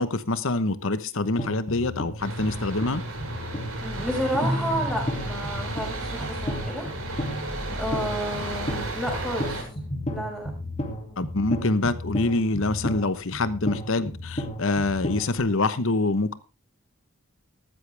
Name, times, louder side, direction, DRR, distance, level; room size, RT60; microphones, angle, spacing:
voice 1, 0.0-3.0 11.2-16.3, left 2 dB, 65° left, 1.0 m, -25 dB
sound 1, 1.4-15.4, equal, 30° left, 2.4 m, -34 dB
sound 2, 2.2-9.6, right 2 dB, 80° right, 6.4 m, -33 dB
voice 2, 3.8-6.9 7.7-9.6 10.1-10.5, equal, 5° left, 5.7 m, -30 dB
13.5 x 13.5 x 3.4 m
head